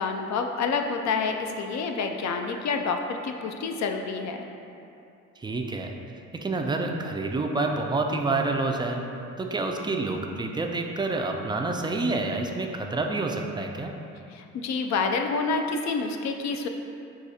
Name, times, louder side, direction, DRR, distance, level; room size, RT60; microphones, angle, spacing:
voice 1, 0.0-4.4 14.3-16.7, left 4 dB, 65° left, 4 dB, 0.4 m, -28 dB
voice 2, 5.4-5.9 6.4-9.0 9.4-13.9, right 3 dB, 15° right, 2 dB, 0.3 m, -28 dB
4.8 x 2.3 x 4.1 m, 2.6 s
cardioid pair, 90°, 30 cm